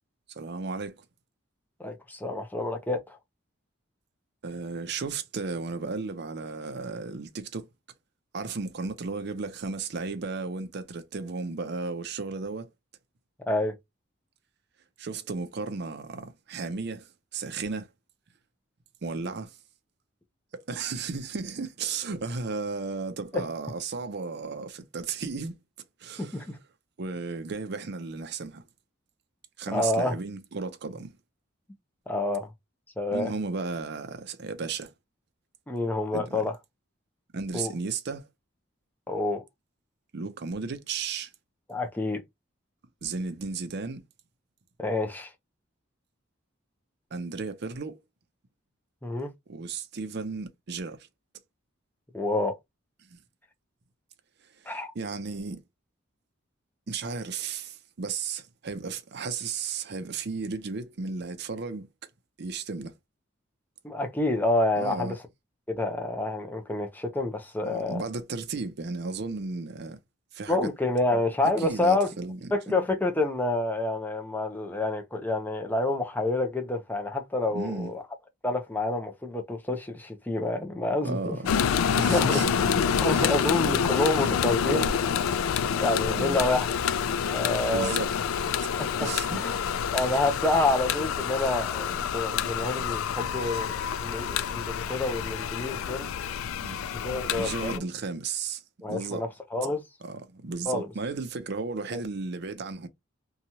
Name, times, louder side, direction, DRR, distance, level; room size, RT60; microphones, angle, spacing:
voice 1, 0.3-1.0 4.4-7.7 8.3-12.7 15.0-17.9 19.0-19.6 20.5-25.6 26.0-26.5 27.0-28.6 29.6-31.2 33.1-34.9 36.1-36.4 37.3-38.3 40.1-41.3 43.0-44.0 47.1-48.0 49.5-51.1 53.1-53.2 54.6-55.6 56.9-61.9 62.4-62.9 64.8-65.2 67.6-70.0 70.3-70.7 71.6-72.5 77.5-77.9 81.0-81.5 82.0-82.5 83.1-83.4 84.7-85.0 86.1-86.4 87.7-88.1 89.0-89.7 96.6-96.8 97.3-98.6 98.9-99.3 100.0-102.9, right 4 dB, 55° right, 0.5 m, -34 dB
voice 2, 1.8-3.2 13.5-13.7 23.3-23.4 26.2-26.6 29.7-30.1 32.1-32.5 33.0-33.3 35.7-36.5 37.5-37.7 39.1-39.4 41.7-42.2 44.8-45.3 49.0-49.3 52.1-52.6 54.7-54.9 63.8-65.2 65.7-68.0 70.5-72.1 72.5-78.0 78.4-81.4 82.1-82.4 83.0-84.9 85.8-86.6 87.3-88.0 88.8-89.6 89.9-96.1 96.9-97.8 98.8-99.8 100.7-100.9 101.9-102.0, left 2 dB, 10° left, 0.5 m, -28 dB
sound 1, 81.5-97.8, left 7 dB, 85° left, 0.3 m, -27 dB
2.9 x 2.3 x 2.7 m
head